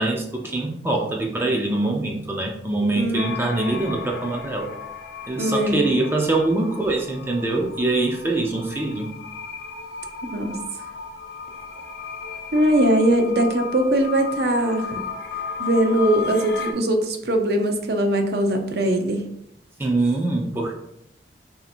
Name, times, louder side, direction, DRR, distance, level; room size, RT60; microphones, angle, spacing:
voice 1, 0.0-4.7 5.3-9.1 19.8-20.7, right 2 dB, 15° right, 0 dB, 0.4 m, -24 dB
voice 2, 3.0-3.4 5.4-5.8 10.3-10.6 12.5-15.0 15.6-19.2, right 1 dB, 60° right, 4 dB, 0.6 m, -21 dB
sound 1, 3.1-16.7, left 5 dB, 85° left, 0.5 m, -35 dB
3.3 x 2.8 x 4.2 m, 0.76 s
head